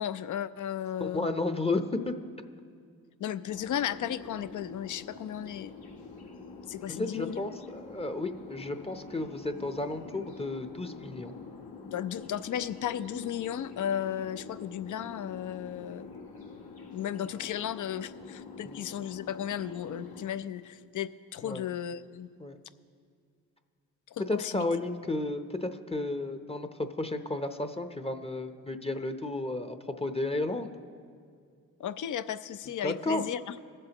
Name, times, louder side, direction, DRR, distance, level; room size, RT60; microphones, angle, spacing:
voice 1, 0.0-1.3 3.2-5.7 6.7-7.5 11.9-16.1 16.9-22.3 24.1-24.7 31.8-33.5, left 10 dB, 55° left, 14 dB, 0.6 m, -35 dB
voice 2, 1.0-2.1 6.9-11.3 18.6-18.8 21.4-21.6 22.4-22.6 24.2-30.7 32.8-33.2, left 2 dB, 15° left, 8 dB, 0.7 m, -33 dB
sound 1, 3.5-20.3, left 4 dB, 85° left, 1.7 m, -46 dB
21.0 x 7.7 x 3.0 m, 2.2 s
supercardioid pair, 50°, 36 cm